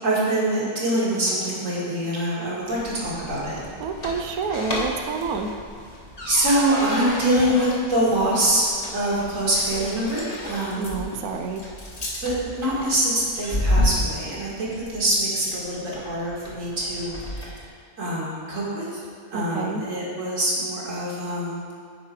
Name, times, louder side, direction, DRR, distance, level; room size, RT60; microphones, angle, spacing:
voice 1, 0.0-3.7 6.2-11.0 12.2-17.7 18.0-19.0 19.3-21.8, right 1 dB, 60° right, -6 dB, 2.3 m, -24 dB
sound 1, 2.7-17.7, left 1 dB, 30° left, 1.1 m, -32 dB
voice 2, 3.8-5.5 10.8-11.6 19.3-19.8, right 4 dB, 85° right, 4 dB, 1.1 m, -28 dB
9.1 x 4.8 x 4.9 m, 2.1 s
omnidirectional pair, 1.5 m